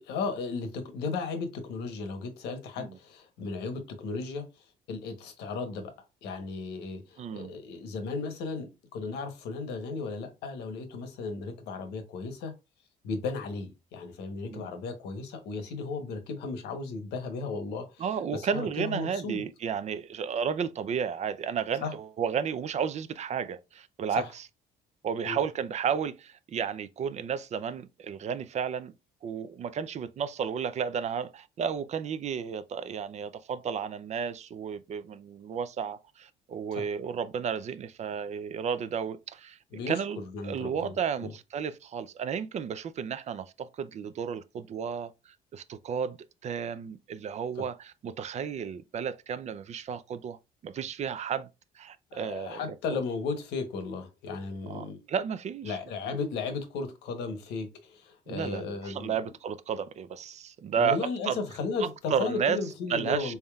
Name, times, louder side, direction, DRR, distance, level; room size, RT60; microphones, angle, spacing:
voice 1, 0.0-5.9 6.2-12.5 13.0-18.0 18.3-19.4 21.8-21.9 24.1-24.3 25.2-25.4 36.8-36.9 39.7-41.3 47.6-47.7 52.1-55.0 55.6-59.1 60.8-63.4, left 4 dB, 80° left, 1.0 m, -35 dB
voice 2, 7.2-7.5 14.5-14.7 18.0-24.4 25.0-28.9 29.2-39.6 39.9-46.2 46.4-50.4 50.6-51.5 51.8-52.7 54.7-55.8 58.3-61.0 61.3-61.4 62.1-62.6 62.9-63.4, right 7 dB, 45° right, 0.4 m, -32 dB
4.1 x 3.5 x 2.3 m
cardioid pair, 110°, 17 cm